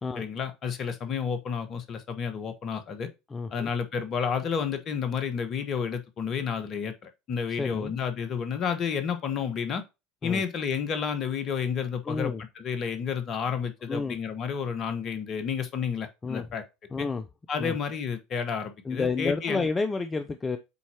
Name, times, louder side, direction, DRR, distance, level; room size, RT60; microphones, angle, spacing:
voice 1, 0.2-3.1 3.5-9.8 10.2-16.6 17.0-17.1 17.5-19.7, left 6 dB, 40° left, 1.3 m, -31 dB
voice 2, 3.3-3.7 7.6-7.9 10.2-10.4 12.0-12.4 13.9-14.2 16.2-16.5 16.9-17.3 17.6-17.8 18.8-20.6, left 4 dB, 20° left, 0.6 m, -30 dB
8.3 x 4.2 x 2.9 m
figure-of-eight pair, 70°, 0 cm